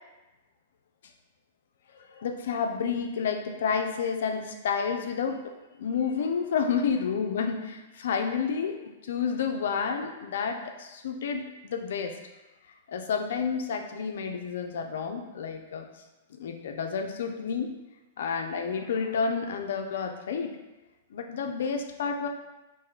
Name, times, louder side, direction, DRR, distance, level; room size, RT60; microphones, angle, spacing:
voice 1, 1.9-5.4 5.8-12.1 12.9-15.9 16.3-17.7 18.2-20.6 21.1-22.3, left 6 dB, 70° left, 5 dB, 0.4 m, -30 dB
3.2 x 2.6 x 3.6 m, 1.1 s
hypercardioid pair, 115°, 0 cm